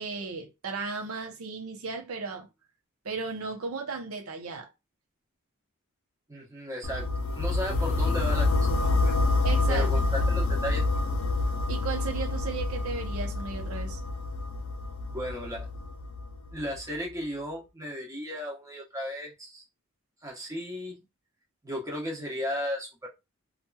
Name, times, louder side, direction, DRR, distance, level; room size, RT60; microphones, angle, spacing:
voice 1, 0.0-2.5 3.0-4.7 9.4-9.9 11.7-14.0, right 4 dB, 85° right, 0.7 m, -35 dB
voice 2, 6.3-9.2 9.7-10.9 15.1-15.7 16.5-19.6 20.2-21.0 21.6-23.1, left 1 dB, 15° right, 0.9 m, -35 dB
sound 1, 6.8-16.8, left 2 dB, 75° left, 0.5 m, -27 dB
2.8 x 2.4 x 2.3 m
head